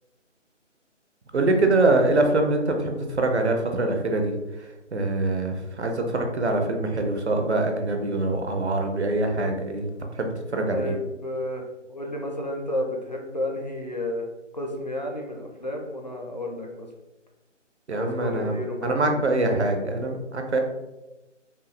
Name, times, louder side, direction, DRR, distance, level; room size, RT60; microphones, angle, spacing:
voice 1, 1.3-10.9 17.9-20.6, right 2 dB, 60° right, 4 dB, 0.8 m, -24 dB
voice 2, 10.7-11.6 11.9-14.3 14.5-16.9 17.9-19.0, left 1 dB, 35° left, 0 dB, 0.5 m, -31 dB
5.3 x 2.3 x 3.3 m, 1.0 s
figure-of-eight pair, 155°, 37 cm